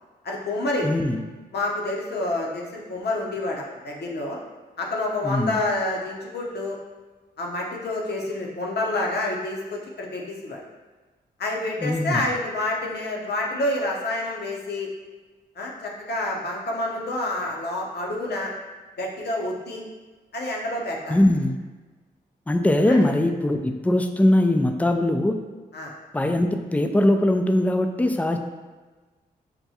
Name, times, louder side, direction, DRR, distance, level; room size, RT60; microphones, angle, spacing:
voice 1, 0.2-0.9 1.5-4.4 4.8-6.8 7.4-10.6 11.4-14.9 15.6-18.5 19.0-19.8 20.3-21.2 22.9-23.1 25.7-25.9, left 2 dB, 65° left, -1 dB, 0.8 m, -28 dB
voice 2, 0.8-1.2 5.2-5.6 11.8-12.2 21.1-21.6 22.5-25.4 26.1-28.4, left 1 dB, 10° left, 6 dB, 0.4 m, -21 dB
5.8 x 2.2 x 2.7 m, 1.3 s
supercardioid pair, 45°, 18 cm